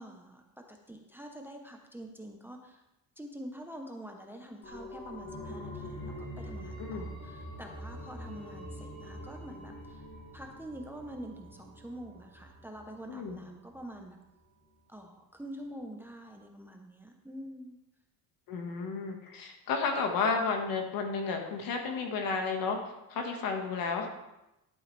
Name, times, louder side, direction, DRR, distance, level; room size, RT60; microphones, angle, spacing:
voice 1, 0.0-2.8 3.2-10.0 10.3-14.2 14.9-17.8, right 1 dB, 5° right, 2 dB, 0.7 m, -46 dB
sound 1, 4.6-14.0 14.3-14.4, equal, 35° left, 3.1 m, -45 dB
voice 2, 6.8-7.1 13.1-13.4 18.5-22.8 23.1-24.1, left 4 dB, 65° left, 3 dB, 1.7 m, -32 dB
11.5 x 8.3 x 3.3 m, 0.93 s
cardioid pair, 155°, 37 cm